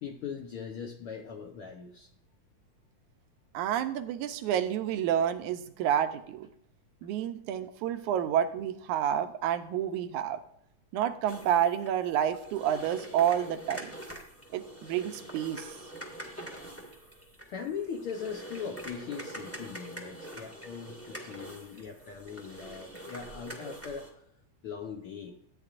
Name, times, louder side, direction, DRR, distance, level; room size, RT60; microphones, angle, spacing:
voice 1, 0.0-2.1 7.0-7.1 17.5-24.1 24.6-25.4, left 6 dB, 70° left, 2 dB, 1.3 m, -40 dB
voice 2, 3.5-6.5 7.0-10.4 10.9-14.0 14.5-15.7, right 10 dB, 90° right, 8 dB, 2.1 m, -29 dB
sound 1, 11.3-24.1, right 1 dB, 10° left, 0.7 m, -45 dB
14.0 x 8.7 x 2.5 m, 0.70 s
omnidirectional pair, 3.4 m